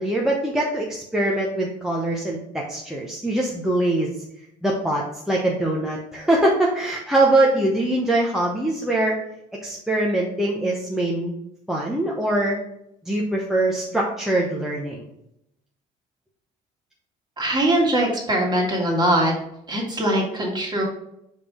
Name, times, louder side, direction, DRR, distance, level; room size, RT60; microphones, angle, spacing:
voice 1, 0.0-4.1 4.6-9.2 9.6-11.3 11.7-12.6 13.1-15.0, right 1 dB, ahead, -3 dB, 0.8 m, -23 dB
voice 2, 17.4-19.3 19.7-20.8, right 1 dB, 25° right, -1 dB, 1.9 m, -21 dB
5.1 x 3.7 x 5.0 m, 0.81 s
cardioid pair, 110°, 17 cm